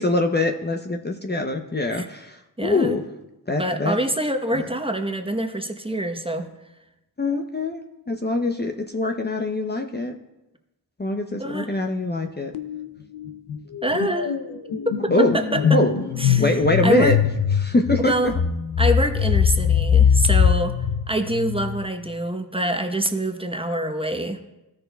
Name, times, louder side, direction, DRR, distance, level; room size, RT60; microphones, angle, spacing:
voice 1, 0.0-3.0 3.5-4.0 7.2-10.1 11.0-12.5 15.1-15.4 15.6-15.9 16.3-17.2 17.6-18.3, left 2 dB, 25° left, 4 dB, 0.7 m, -23 dB
voice 2, 2.6-3.0 3.6-6.5 11.4-11.8 13.8-14.3 15.0-15.8 16.2-16.4 16.8-17.2 18.0-18.3 18.8-20.7 21.1-24.4, right 1 dB, 15° right, 5 dB, 0.9 m, -25 dB
sound 1, 12.5-12.9 13.1-21.9, left 7 dB, 75° left, 0.6 m, -22 dB
13.5 x 6.6 x 2.3 m, 0.96 s
cardioid pair, 45°, 40 cm